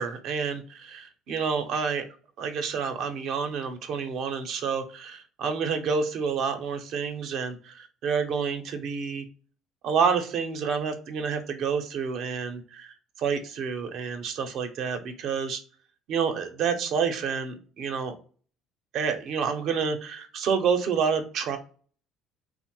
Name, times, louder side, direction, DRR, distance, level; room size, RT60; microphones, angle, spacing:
voice 1, 0.0-2.0 2.4-9.2 9.8-15.6 16.1-18.1 18.9-21.6, right 6 dB, 60° right, 7 dB, 0.6 m, -29 dB
2.9 x 2.0 x 3.0 m, 0.40 s
cardioid pair, 115°, 0 cm